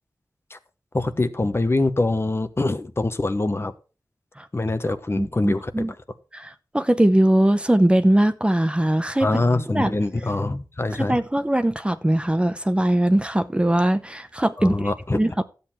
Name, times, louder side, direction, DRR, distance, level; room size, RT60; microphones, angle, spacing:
voice 1, 0.9-3.7 4.5-5.9 9.2-11.2 14.6-15.2, left 2 dB, 35° left, 1.1 m, -24 dB
voice 2, 5.2-5.9 6.3-9.4 9.7-9.9 11.1-15.4, right 1 dB, 15° right, 0.8 m, -21 dB
12.0 x 8.0 x 4.4 m
wide cardioid pair, 70°, 7 cm